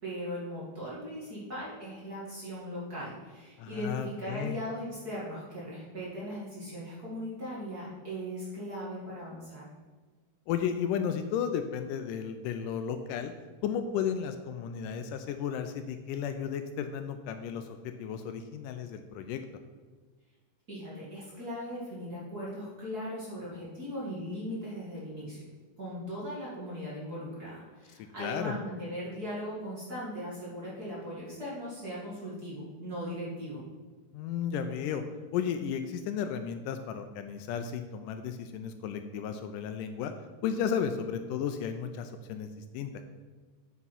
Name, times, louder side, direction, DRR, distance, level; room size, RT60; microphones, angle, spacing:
voice 1, 0.0-9.6 20.7-25.4 25.8-33.6, equal, 35° right, -7 dB, 2.0 m, -38 dB
voice 2, 3.6-4.6 10.5-13.3 13.6-19.4 28.2-28.5 34.1-35.0 35.3-40.1 40.4-43.0, left 8 dB, 80° left, 8 dB, 2.1 m, -34 dB
8.5 x 5.4 x 5.6 m, 1.4 s
omnidirectional pair, 3.9 m